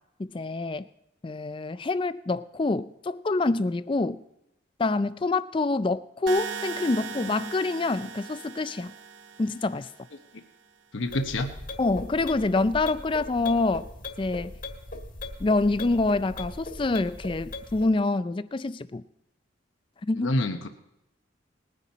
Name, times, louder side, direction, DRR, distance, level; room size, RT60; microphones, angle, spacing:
voice 1, 0.2-0.9 1.2-4.2 4.8-8.9 9.4-9.9 11.8-13.9 14.2-14.6 15.4-19.0 20.1-20.3, left 3 dB, 25° left, 15 dB, 0.4 m, -26 dB
sound 1, 6.3-10.3, right 6 dB, 75° right, 0.9 m, -39 dB
voice 2, 10.9-11.5 20.2-20.7, left 1 dB, 80° left, 6 dB, 0.9 m, -27 dB
sound 2, 11.0-17.9, left 2 dB, 45° left, 1.6 m, -39 dB
20.0 x 9.9 x 4.1 m, 0.87 s
head